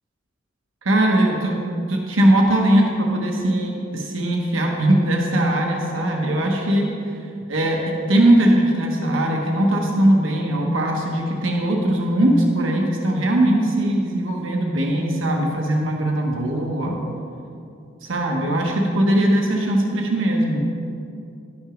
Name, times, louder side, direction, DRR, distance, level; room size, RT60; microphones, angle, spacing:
voice 1, 0.8-1.6 1.9-6.9 7.5-17.0 18.0-20.6, right 1 dB, 75° right, 1 dB, 1.1 m, -20 dB
11.5 x 6.2 x 5.0 m, 2.6 s
head